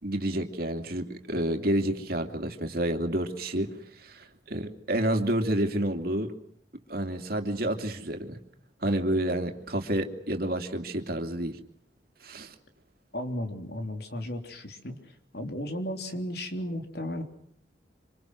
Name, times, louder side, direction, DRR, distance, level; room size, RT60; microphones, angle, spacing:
voice 1, 0.0-3.8 4.0-6.3 6.9-8.4 8.8-11.6 12.2-12.5, right 1 dB, 55° right, 5 dB, 2.8 m, -29 dB
voice 2, 13.1-17.2, left 1 dB, 60° left, 5 dB, 3.6 m, -35 dB
27.0 x 26.5 x 6.3 m, 0.68 s
head